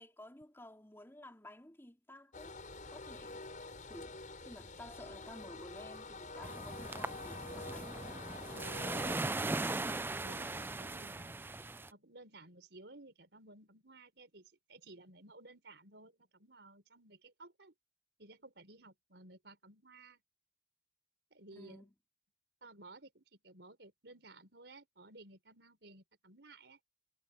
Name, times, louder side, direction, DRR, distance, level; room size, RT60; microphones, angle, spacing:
voice 1, 0.0-2.6 2.9-3.4 3.8-4.2 4.4-8.0 21.5-21.9, left 1 dB, 15° left, 3.4 m, -53 dB
sound 1, 2.3-9.2, left 3 dB, 45° left, 6.3 m, -47 dB
sound 2, 6.4-11.9, right 2 dB, 10° right, 0.3 m, -39 dB
voice 2, 8.5-9.8 10.2-11.4 11.9-17.7 18.2-20.2 21.3-21.8 22.6-26.8, right 2 dB, 75° right, 4.4 m, -56 dB
head